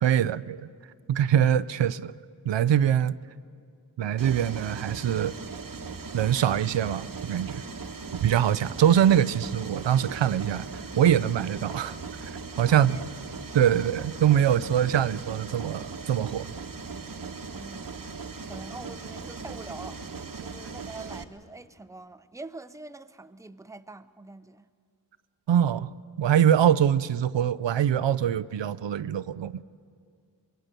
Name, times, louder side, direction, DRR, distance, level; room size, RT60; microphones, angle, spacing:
voice 1, 0.0-0.7 1.1-2.1 2.5-3.2 4.0-5.3 6.1-7.6 8.2-13.0 13.5-16.5 25.5-25.9 26.2-29.6, right 9 dB, 85° right, 0.6 m, -23 dB
Mechanisms, 4.2-21.2, right 4 dB, 50° right, 1.1 m, -39 dB
voice 2, 12.7-13.1 13.7-13.9 17.5-18.1 18.4-20.0 20.4-24.7, right 3 dB, 5° right, 0.6 m, -44 dB
24.5 x 23.0 x 6.7 m
wide cardioid pair, 60°, 43 cm